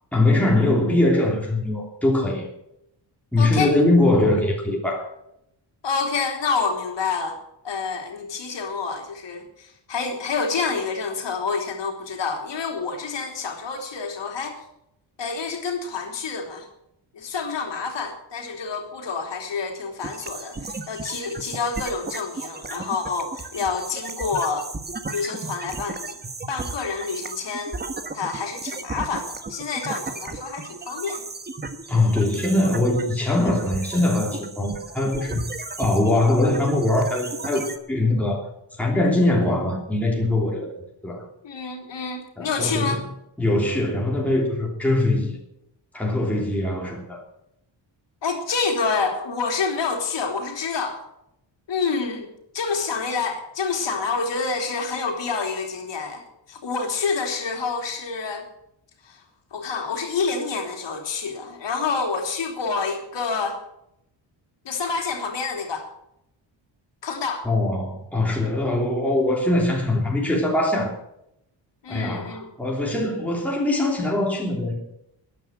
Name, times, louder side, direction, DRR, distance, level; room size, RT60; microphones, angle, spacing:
voice 1, 0.1-2.5 3.3-5.1 31.9-35.4 35.8-38.5 38.8-41.2 42.4-43.0 43.4-45.4 45.9-47.2 67.4-70.9 71.9-74.8, left 2 dB, 5° left, -2 dB, 3.1 m, -22 dB
voice 2, 3.4-3.7 5.8-7.3 7.6-14.6 15.2-16.7 17.1-24.7 25.1-26.2 26.5-27.8 28.1-31.2 41.4-43.0 48.2-51.0 51.7-52.3 52.5-56.2 56.5-58.5 59.0-59.2 59.5-63.6 64.6-65.8 67.0-67.5 71.8-72.5, left 4 dB, 70° left, 3 dB, 3.4 m, -28 dB
sound 1, 20.0-37.8, right 3 dB, 20° right, 1.2 m, -35 dB
13.5 x 10.0 x 7.6 m, 0.80 s
wide cardioid pair, 150°, 46 cm